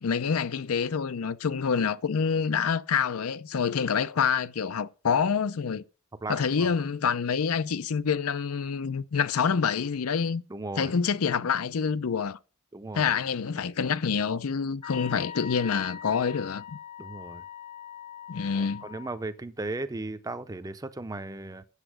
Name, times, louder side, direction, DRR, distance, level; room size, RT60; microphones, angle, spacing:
voice 1, 0.0-5.8 6.3-10.4 10.8-12.4 12.9-16.8 18.3-18.8, left 6 dB, 85° left, 0.5 m, -27 dB
voice 2, 6.2-6.7 10.5-10.9 12.7-13.1 15.1-15.2 17.0-17.4 18.6-21.6, right 2 dB, 15° right, 0.5 m, -36 dB
Wind instrument woodwind instrument, 14.8-19.2, left 9 dB, 30° left, 0.8 m, -42 dB
8.2 x 7.9 x 6.1 m
head